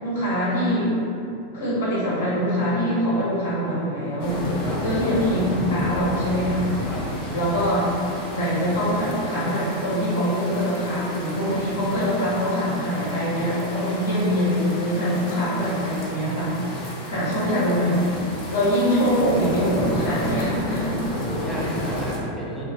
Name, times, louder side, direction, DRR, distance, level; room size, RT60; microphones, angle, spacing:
voice 1, 0.0-0.9 1.5-4.4 4.8-6.7 7.3-21.0, equal, 75° left, -8 dB, 1.1 m, -24 dB
sound 1, 4.2-22.2, left 1 dB, 55° left, 0.7 m, -31 dB
voice 2, 16.2-17.2 21.2-22.7, right 1 dB, 5° left, -6 dB, 0.7 m, -33 dB
2.9 x 2.0 x 3.5 m, 2.5 s
figure-of-eight pair, 90°, 0 cm